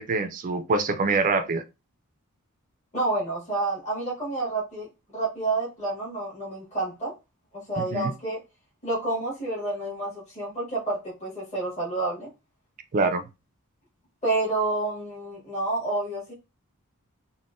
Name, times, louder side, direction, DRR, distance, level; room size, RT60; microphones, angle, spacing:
voice 1, 0.0-1.6 7.9-8.1 12.9-13.2, right 3 dB, 35° right, 0.3 m, -24 dB
voice 2, 2.9-4.9 5.1-7.1 7.7-8.4 8.8-12.3 14.2-16.3, right 2 dB, 30° left, 1.2 m, -29 dB
3.5 x 2.1 x 2.5 m
head